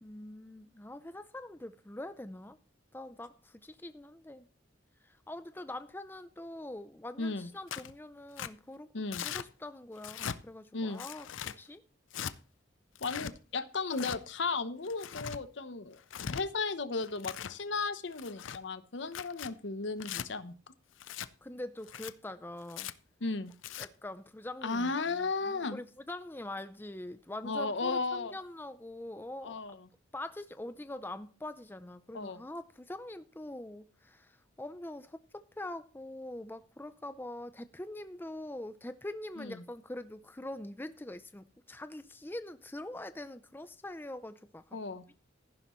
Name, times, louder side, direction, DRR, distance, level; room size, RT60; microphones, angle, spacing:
voice 1, 0.0-2.6 2.9-4.5 5.0-11.8 21.4-22.9 23.8-29.6 30.1-44.8 45.1-45.2, left 1 dB, 10° left, 0.5 m, -44 dB
voice 2, 7.2-7.5 8.9-9.3 10.7-11.0 13.0-16.0 16.3-20.5 23.2-23.5 24.6-25.8 27.4-28.3 29.4-29.7 32.1-32.4 39.4-39.5 44.7-45.0, left 3 dB, 70° left, 0.9 m, -35 dB
Tearing, 7.7-7.9 8.4-8.5 9.1-9.5 10.0-10.4 11.0-11.6 12.1-12.3 12.9-13.3 13.9-14.2 14.9-15.4 16.0-16.4 17.0-17.6 18.1-18.6 19.1-19.5 20.0-20.3 21.0-21.3 21.8-22.1 22.7-22.9 23.5-23.9, left 8 dB, 85° left, 0.5 m, -40 dB
14.5 x 11.0 x 3.1 m
head